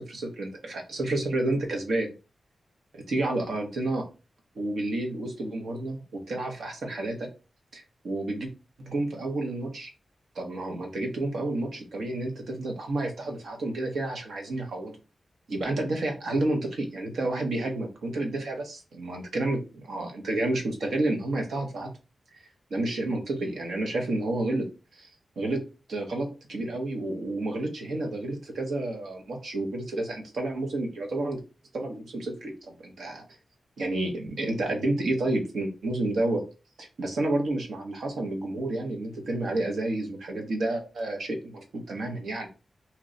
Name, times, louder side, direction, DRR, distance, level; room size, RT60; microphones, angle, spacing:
voice 1, 0.0-2.1 2.9-4.1 4.5-7.3 7.7-8.5 8.8-9.9 10.3-15.0 15.5-21.9 22.7-25.1 25.4-25.6 25.9-31.4 31.7-33.3 33.8-36.4 36.8-42.5, right 2 dB, 80° right, 3 dB, 0.9 m, -30 dB
3.0 x 2.2 x 3.8 m, 0.32 s
wide cardioid pair, 150°, 0 cm